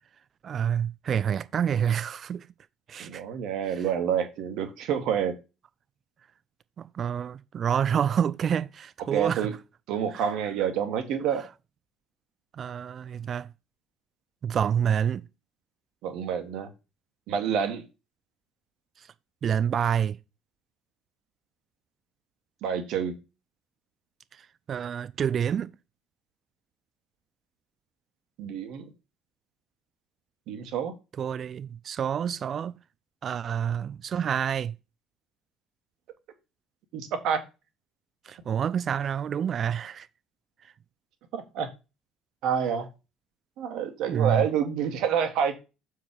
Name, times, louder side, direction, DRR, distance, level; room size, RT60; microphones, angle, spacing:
voice 1, 0.4-2.4 2.9-3.2 3.8-3.9 6.8-9.5 10.1-10.3 12.6-13.5 14.4-15.2 19.4-20.2 24.7-25.7 31.2-32.8 33.2-34.7 38.3-40.1 44.1-44.4, right 8 dB, 40° right, 0.4 m, -28 dB
voice 2, 3.0-5.3 9.1-9.5 9.9-11.4 16.0-16.7 17.3-17.8 22.6-23.1 28.4-28.9 30.5-30.9 36.9-37.4 41.3-41.7 42.4-42.9 43.6-45.5, right 8 dB, 55° right, 1.4 m, -28 dB
7.1 x 4.8 x 5.1 m
figure-of-eight pair, 55°, 0 cm